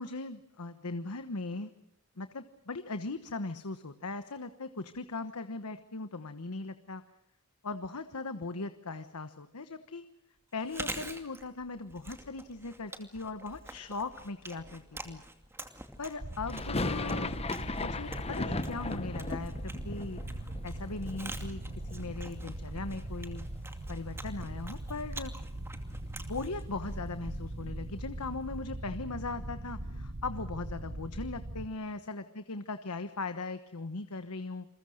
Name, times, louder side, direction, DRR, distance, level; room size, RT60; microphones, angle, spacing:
voice 1, 0.0-1.7 2.2-7.0 7.6-10.0 10.5-15.2 16.0-17.3 17.8-19.5 19.8-20.2 20.6-23.4 23.9-25.3 26.1-34.7, left 3 dB, 90° left, 10 dB, 1.2 m, -39 dB
Chewing mastication, 10.5-27.4, right 2 dB, 10° right, 2.4 m, -47 dB
sound 1, 16.2-31.7, right 1 dB, 55° right, 1.4 m, -40 dB
sound 2, 16.5-22.4 22.7-23.5 23.8-23.9 24.1-26.3, left 2 dB, 30° left, 1.0 m, -38 dB
29.0 x 22.0 x 6.5 m, 0.79 s
head